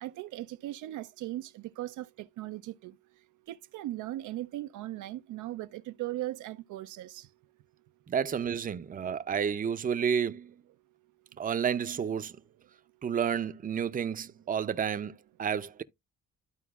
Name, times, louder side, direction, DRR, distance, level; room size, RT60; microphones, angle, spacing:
voice 1, 0.0-2.9 3.5-7.3, right 15 dB, 80° right, 0.5 m, -38 dB
voice 2, 8.1-10.5 11.4-12.4 13.0-15.8, right 7 dB, 30° right, 0.5 m, -31 dB
13.0 x 4.5 x 2.3 m
cardioid pair, 90°, 30 cm